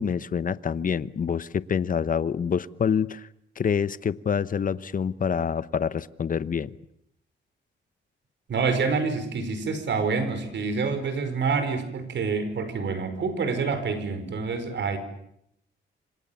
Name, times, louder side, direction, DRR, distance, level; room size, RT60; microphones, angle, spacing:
voice 1, 0.0-3.3 3.6-6.8, left 7 dB, 45° left, 16 dB, 1.0 m, -26 dB
voice 2, 8.5-15.0, right 4 dB, 65° right, 10 dB, 5.3 m, -27 dB
28.0 x 26.0 x 7.2 m, 0.74 s
cardioid pair, 105°, 20 cm